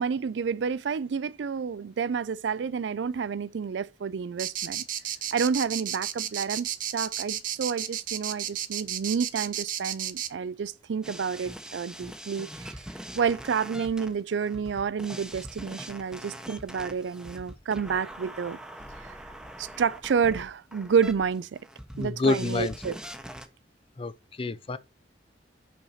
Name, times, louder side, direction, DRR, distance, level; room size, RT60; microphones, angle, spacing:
voice 1, 0.0-4.8 5.3-12.8 13.1-18.6 19.0-19.2 19.6-21.6 22.0-23.0, right 6 dB, 85° right, 0.4 m, -29 dB
sound 1, 4.4-10.3, right 11 dB, 50° right, 0.7 m, -32 dB
sound 2, 11.0-23.5, equal, 5° right, 0.9 m, -43 dB
voice 2, 21.9-22.7 24.0-24.8, left 3 dB, 30° left, 0.5 m, -28 dB
5.9 x 5.6 x 4.1 m
head